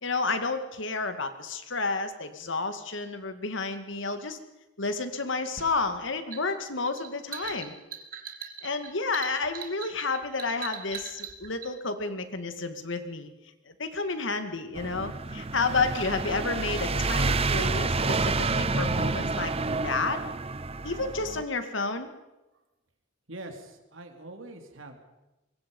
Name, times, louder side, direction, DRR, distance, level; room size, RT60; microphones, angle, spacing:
voice 1, 0.0-4.4 4.8-7.8 8.6-13.3 13.8-19.5 19.8-20.2 20.8-22.1, left 3 dB, 70° left, 8 dB, 2.2 m, -31 dB
sound 1, 5.6-11.7, right 7 dB, 45° right, 2.2 m, -41 dB
sound 2, 14.7-21.4, right 3 dB, 30° right, 0.9 m, -29 dB
voice 2, 23.3-25.0, right 2 dB, 80° right, 5 dB, 3.2 m, -43 dB
25.0 x 22.5 x 5.5 m, 1.0 s
head